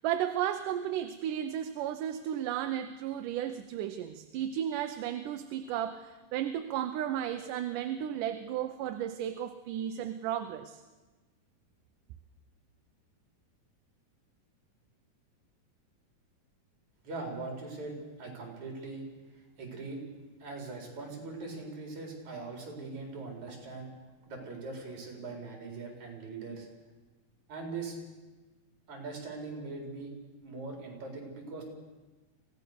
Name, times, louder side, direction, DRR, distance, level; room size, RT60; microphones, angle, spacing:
voice 1, 0.0-10.8, right 10 dB, 75° right, 8 dB, 2.3 m, -34 dB
voice 2, 17.0-19.0 19.6-20.0 20.4-23.9 24.2-26.7 27.5-28.0 28.9-30.1 30.4-31.6, right 3 dB, 55° right, 1 dB, 5.6 m, -41 dB
24.5 x 17.0 x 6.7 m, 1.2 s
omnidirectional pair, 3.9 m